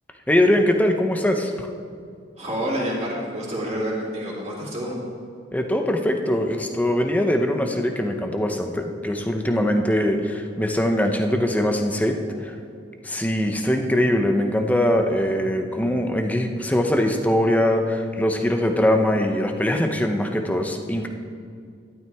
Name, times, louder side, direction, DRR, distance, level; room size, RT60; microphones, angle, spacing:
voice 1, 0.3-1.7 5.5-12.2 12.4-12.5 13.0-21.1, left 1 dB, 10° left, 4 dB, 0.7 m, -22 dB
voice 2, 2.4-5.0 12.3-12.4, equal, 35° right, -5 dB, 2.8 m, -28 dB
12.5 x 12.0 x 3.5 m, 2.3 s
head